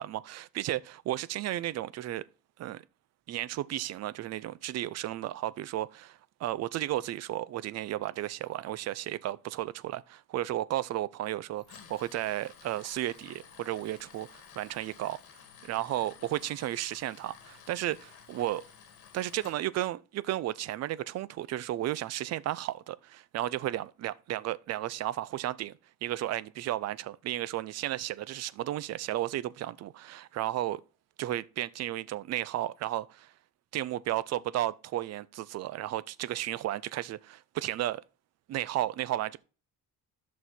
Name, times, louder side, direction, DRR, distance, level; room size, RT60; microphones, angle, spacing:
voice 1, 0.0-2.2 2.6-2.8 3.3-15.2 15.6-18.0 18.3-18.6 19.1-25.7 26.0-30.8 31.2-33.3 33.7-38.0 38.5-39.4, right 14 dB, 45° right, 0.5 m, -33 dB
Tools, 11.6-19.6, left 8 dB, 70° left, 2.2 m, -53 dB
11.0 x 6.4 x 4.2 m
cardioid pair, 150°, 39 cm